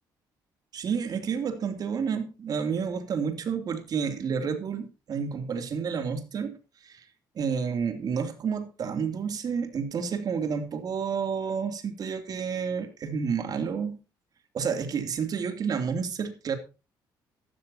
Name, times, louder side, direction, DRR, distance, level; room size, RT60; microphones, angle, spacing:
voice 1, 0.7-6.6 6.8-7.0 7.3-14.0 14.5-16.6, right 6 dB, 55° right, 8 dB, 2.9 m, -30 dB
15.5 x 13.0 x 2.9 m, 0.32 s
cardioid pair, 100°, 8 cm